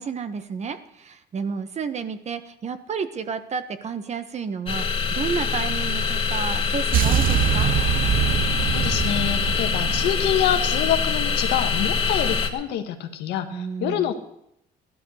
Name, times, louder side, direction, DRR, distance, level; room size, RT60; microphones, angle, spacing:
voice 1, 0.0-7.7 13.5-14.1, right 6 dB, 40° right, 10 dB, 1.4 m, -31 dB
sound 1, 4.7-12.5, left 5 dB, 35° left, 1.7 m, -24 dB
sound 2, 6.9-11.0, right 11 dB, 60° right, 0.6 m, -24 dB
voice 2, 8.7-14.1, left 11 dB, 85° left, 6 dB, 1.7 m, -26 dB
15.5 x 12.5 x 6.6 m, 0.76 s
cardioid pair, 110°, 17 cm